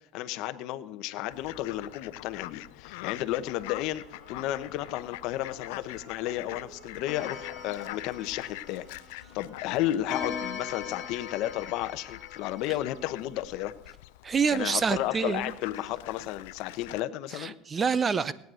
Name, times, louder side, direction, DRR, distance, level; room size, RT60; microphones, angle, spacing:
voice 1, 0.1-13.7 14.5-17.5, left 14 dB, 55° left, 11 dB, 0.8 m, -33 dB
Fowl, 1.3-17.0, left 19 dB, 90° left, 0.4 m, -45 dB
sound 1, 3.8-10.7, right 4 dB, 50° right, 5.9 m, -56 dB
Clock, 7.1-9.3 10.1-13.5, left 7 dB, 30° left, 2.3 m, -40 dB
voice 2, 14.2-15.5 17.3-18.3, right 6 dB, 20° right, 18 dB, 0.5 m, -27 dB
18.0 x 9.2 x 6.3 m, 0.81 s
cardioid pair, 160°, 0 cm